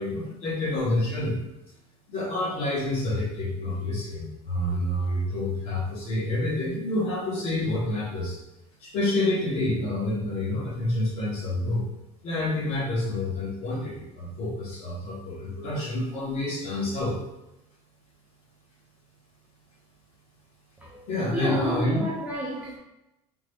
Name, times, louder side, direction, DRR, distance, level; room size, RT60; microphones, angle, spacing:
voice 1, 0.0-1.4 2.1-8.4 8.8-11.9 12.2-17.2 21.1-22.0, left 1 dB, 45° left, -5 dB, 1.1 m, -28 dB
voice 2, 20.8-22.8, equal, 10° right, -5 dB, 0.3 m, -31 dB
3.6 x 2.1 x 3.3 m, 0.93 s
cardioid pair, 180°, 14 cm